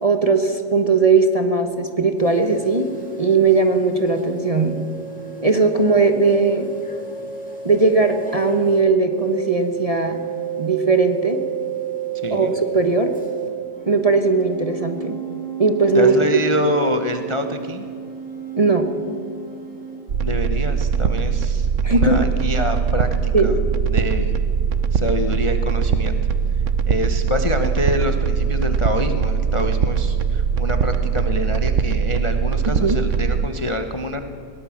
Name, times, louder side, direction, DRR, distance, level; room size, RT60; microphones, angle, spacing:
voice 1, 0.0-2.9 3.2-4.8 5.4-6.7 7.6-10.2 10.6-11.4 12.3-13.1 13.9-15.2 15.6-16.1 18.5-18.9 21.8-22.3 23.3-23.6 32.8-33.0, right 4 dB, 25° right, 6 dB, 1.1 m, -18 dB
sound 1, 2.2-8.8 9.1-13.5 13.7-20.0, right 8 dB, 5° left, 3.6 m, -32 dB
voice 2, 12.2-12.5 15.9-17.9 20.2-23.5 23.9-24.4 24.9-26.1 26.9-34.2, left 1 dB, 25° left, 6 dB, 0.8 m, -26 dB
sound 2, 20.1-33.5, right 6 dB, 50° right, 1.1 m, -21 dB
22.0 x 18.0 x 7.3 m, 2.4 s
omnidirectional pair, 1.9 m